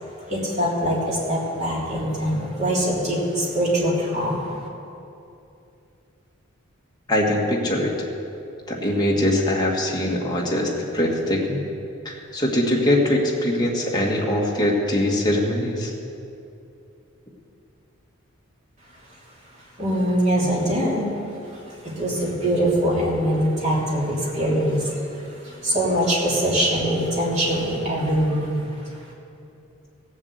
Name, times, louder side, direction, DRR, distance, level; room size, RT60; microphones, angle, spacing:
voice 1, 0.3-4.4 19.8-21.2 21.5-28.7, equal, 35° right, -5 dB, 3.1 m, -23 dB
voice 2, 7.1-7.9 8.7-11.6 12.1-15.9, left 1 dB, 20° left, -3 dB, 1.9 m, -22 dB
16.5 x 7.3 x 8.1 m, 2.7 s
head